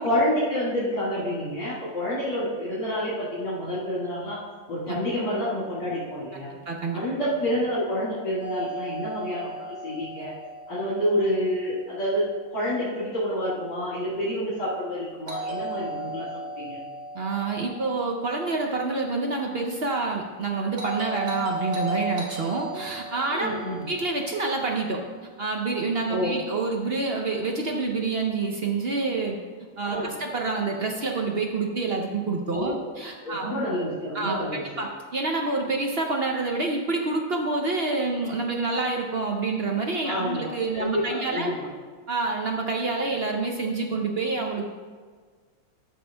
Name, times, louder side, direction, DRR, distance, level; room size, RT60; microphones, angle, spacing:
voice 1, 0.0-4.4 4.7-6.5 6.9-10.3 10.7-16.8 23.3-23.9 26.1-26.4 29.8-30.1 32.5-32.8 33.2-34.9 40.0-41.7, equal, 65° left, -8 dB, 2.7 m, -28 dB
voice 2, 6.7-7.0 17.1-23.5 23.9-29.4 29.8-33.5 34.1-34.4 34.8-41.5 42.1-44.7, right 3 dB, 55° right, 1 dB, 0.6 m, -27 dB
Doorbell, 8.4-12.4 15.3-19.5 20.8-25.2, right 1 dB, 75° right, 2.2 m, -36 dB
12.5 x 6.3 x 3.4 m, 1.5 s
omnidirectional pair, 2.0 m